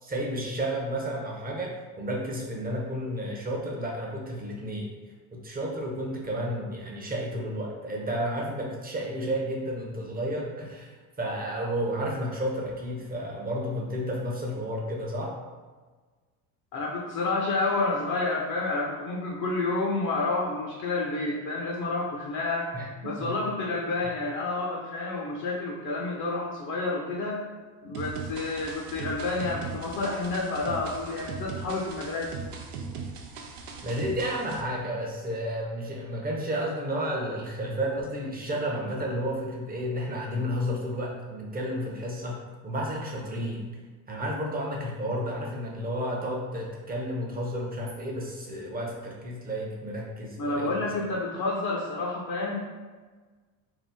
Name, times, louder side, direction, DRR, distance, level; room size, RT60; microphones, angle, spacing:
voice 1, 0.0-4.9 5.3-15.3 22.7-23.3 33.8-42.4 42.6-43.7 44.1-50.9, equal, 20° right, -2 dB, 0.7 m, -32 dB
voice 2, 16.7-22.7 23.0-27.5 27.8-32.3 50.4-52.6, left 3 dB, 40° left, -3 dB, 0.6 m, -29 dB
sound 1, 27.9-34.6, right 5 dB, 85° right, 0.6 m, -39 dB
2.8 x 2.0 x 3.4 m, 1.4 s
supercardioid pair, 80°, 46 cm